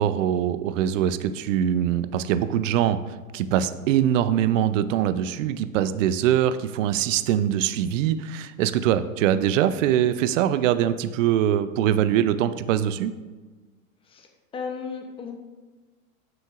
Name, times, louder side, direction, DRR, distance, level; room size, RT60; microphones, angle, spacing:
voice 1, 0.0-13.2, right 10 dB, 65° right, 13 dB, 0.5 m, -23 dB
voice 2, 14.0-15.3, left 5 dB, 15° left, 4 dB, 0.6 m, -35 dB
7.4 x 6.1 x 2.4 m, 1.3 s
hypercardioid pair, 125°, 42 cm